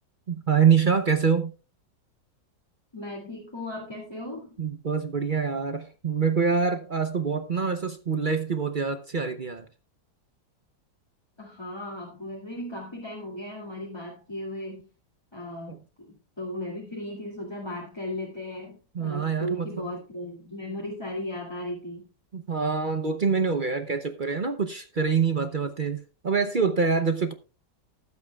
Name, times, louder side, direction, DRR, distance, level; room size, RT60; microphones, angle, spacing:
voice 1, 0.3-1.5 4.6-9.7 15.7-15.8 18.9-19.7 22.3-27.3, right 6 dB, 45° right, 0.7 m, -25 dB
voice 2, 2.9-4.6 11.4-14.9 15.3-22.1, left 1 dB, 15° left, 2.5 m, -36 dB
19.5 x 8.2 x 2.4 m
omnidirectional pair, 1.8 m